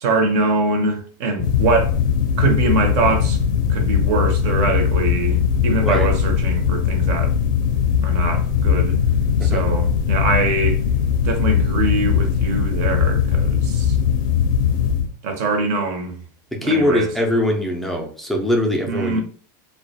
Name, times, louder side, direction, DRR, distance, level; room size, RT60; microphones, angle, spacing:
voice 1, 0.0-1.9 2.4-3.4 3.7-7.3 8.0-9.0 9.4-10.8 11.2-14.0 15.2-16.2 16.6-17.1 18.9-19.2, right 3 dB, 55° right, 0.6 m, -23 dB
sound 1, 1.4-15.1, left 7 dB, 70° left, 0.4 m, -19 dB
voice 2, 16.6-19.2, left 1 dB, ahead, 0.4 m, -21 dB
2.3 x 2.1 x 2.7 m
supercardioid pair, 155°, 11 cm